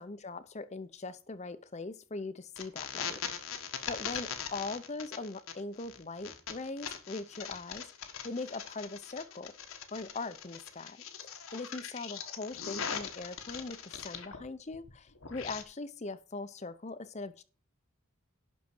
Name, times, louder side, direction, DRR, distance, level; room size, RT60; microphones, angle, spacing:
voice 1, 0.0-3.2 3.9-9.5 9.9-11.0 11.5-17.4, left 3 dB, 30° left, 13 dB, 0.7 m, -41 dB
sound 1, 2.6-14.5 14.7-15.6, left 7 dB, 70° left, 1.4 m, -41 dB
11.5 x 4.2 x 7.6 m, 0.37 s
head